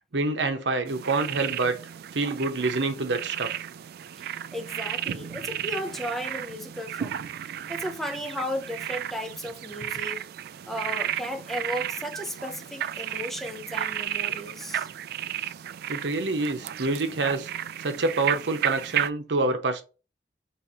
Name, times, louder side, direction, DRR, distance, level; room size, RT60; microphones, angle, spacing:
voice 1, 0.1-1.8 2.1-3.5 15.9-17.5 17.8-19.8, right 3 dB, 80° right, 0.8 m, -26 dB
sound 1, 0.9-19.1, right 10 dB, 60° right, 0.3 m, -33 dB
voice 2, 4.5-7.2 7.7-10.2 10.7-14.9, equal, ahead, 0.5 m, -34 dB
4.8 x 3.1 x 2.8 m
head